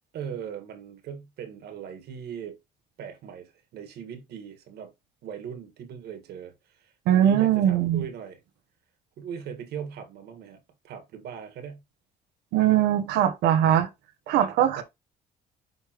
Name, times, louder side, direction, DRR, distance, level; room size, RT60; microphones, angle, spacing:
voice 1, 0.1-2.6 3.0-4.9 5.2-8.4 9.2-11.8 14.8-14.9, right 7 dB, 70° right, 1.8 m, -39 dB
voice 2, 7.1-8.1 12.5-13.9 14.3-14.8, right 11 dB, 90° right, 1.0 m, -21 dB
9.7 x 3.3 x 3.1 m
cardioid pair, 110°, 17 cm